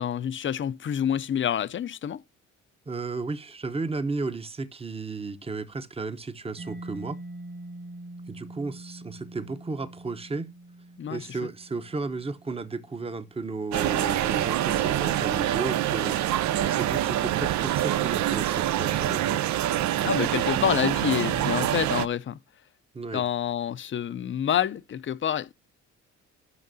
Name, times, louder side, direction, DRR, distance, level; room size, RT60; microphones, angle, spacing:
voice 1, 0.0-2.2 11.0-11.3 20.0-22.4 23.1-25.5, left 9 dB, 40° left, 0.5 m, -27 dB
voice 2, 2.9-7.2 8.3-10.5 11.1-19.4 22.9-23.2, right 3 dB, 20° right, 0.8 m, -34 dB
Mallet percussion, 6.6-14.1, right 1 dB, 45° right, 1.6 m, -44 dB
sound 1, 13.7-22.1, right 12 dB, 70° right, 0.5 m, -25 dB
12.5 x 5.9 x 2.6 m
cardioid pair, 90°, 30 cm